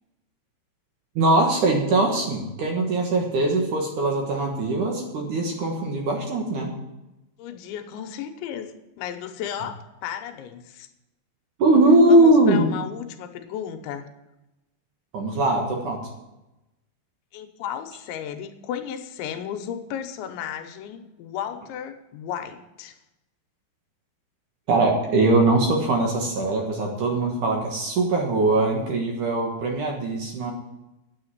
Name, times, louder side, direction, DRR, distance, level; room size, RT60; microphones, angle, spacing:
voice 1, 1.2-6.7 11.6-12.7 15.1-16.0 24.7-30.5, right 2 dB, 60° right, 1 dB, 2.4 m, -21 dB
voice 2, 7.4-9.8 10.0-10.9 12.1-14.1 17.3-23.0, left 9 dB, 90° left, 7 dB, 3.3 m, -34 dB
9.6 x 8.1 x 9.4 m, 0.97 s
omnidirectional pair, 5.1 m